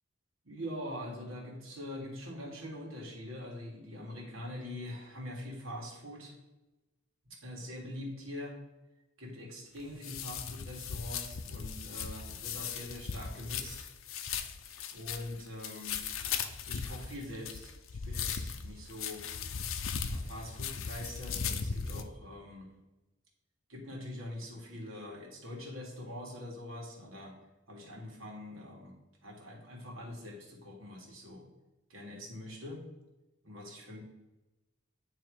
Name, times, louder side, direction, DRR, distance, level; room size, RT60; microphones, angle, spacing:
voice 1, 0.4-6.3 7.2-8.6 9.2-13.9 14.9-16.1 16.7-19.2 20.1-22.7 23.7-27.4 27.7-29.0 29.2-31.5 31.9-32.8 33.4-34.0, left 1 dB, 80° right, -1 dB, 1.9 m, -43 dB
sound 1, 9.8-22.0, left 6 dB, 80° left, 0.6 m, -38 dB
9.2 x 3.2 x 4.8 m, 1.1 s
head